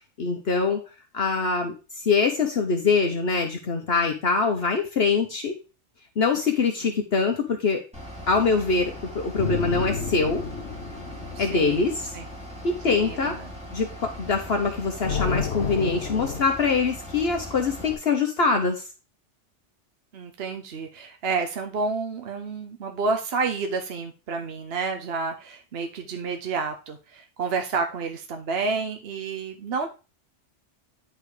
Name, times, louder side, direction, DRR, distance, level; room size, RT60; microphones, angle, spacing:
voice 1, 0.2-0.8 1.1-5.6 6.2-7.8 8.3-10.4 11.4-12.1 12.6-13.3 13.7-18.9, left 4 dB, 60° left, 4 dB, 1.2 m, -24 dB
Bus / Idling, 7.9-17.9, equal, 5° right, 3.3 m, -40 dB
sound 1, 9.4-12.1 15.0-16.4, left 6 dB, 75° left, 1.4 m, -30 dB
voice 2, 11.3-11.8 12.1-12.3 12.9-13.5 20.1-29.9, right 4 dB, 60° right, 5 dB, 1.1 m, -30 dB
10.5 x 4.5 x 4.9 m, 0.33 s
omnidirectional pair, 1.2 m